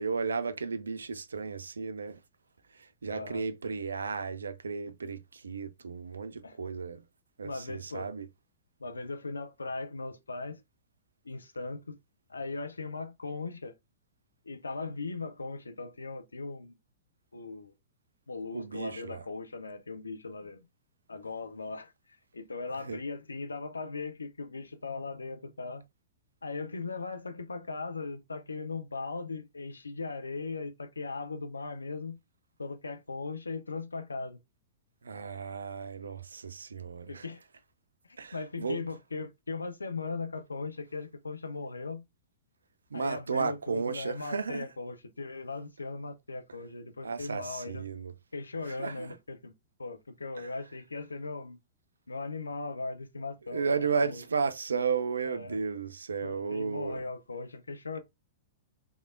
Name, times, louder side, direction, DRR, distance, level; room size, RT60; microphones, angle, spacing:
voice 1, 0.0-2.2 2.7-7.0 7.4-8.3 18.5-19.2 22.8-23.0 35.0-37.3 38.2-38.8 42.9-44.7 47.0-48.1 48.7-49.2 50.4-50.5 53.5-57.0, right 5 dB, 70° right, 0.4 m, -34 dB
voice 2, 3.1-3.5 6.4-6.6 7.4-8.1 8.8-10.6 11.2-12.0 12.3-13.7 14.4-16.7 17.3-17.7 18.3-20.7 21.1-21.9 22.3-25.8 26.4-32.2 32.6-34.4 37.1-37.4 38.1-42.0 42.9-47.8 48.3-49.5 49.8-51.6 52.1-54.2 55.3-55.6 56.2-58.0, left 3 dB, 75° left, 0.6 m, -38 dB
3.5 x 3.3 x 2.4 m
figure-of-eight pair, 105°, 0 cm